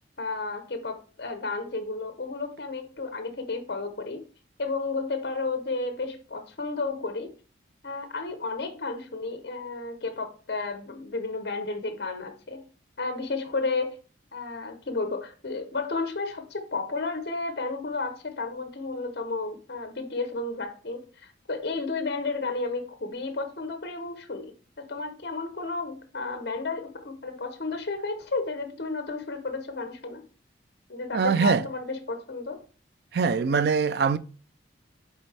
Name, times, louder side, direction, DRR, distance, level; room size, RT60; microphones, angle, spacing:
voice 1, 0.2-4.2 4.6-7.3 7.8-12.6 13.0-13.9 14.3-30.2 30.9-32.6, left 3 dB, 55° left, 0.8 m, -32 dB
voice 2, 31.1-31.6 33.1-34.2, right 5 dB, 60° right, 0.3 m, -22 dB
8.1 x 3.6 x 3.3 m
head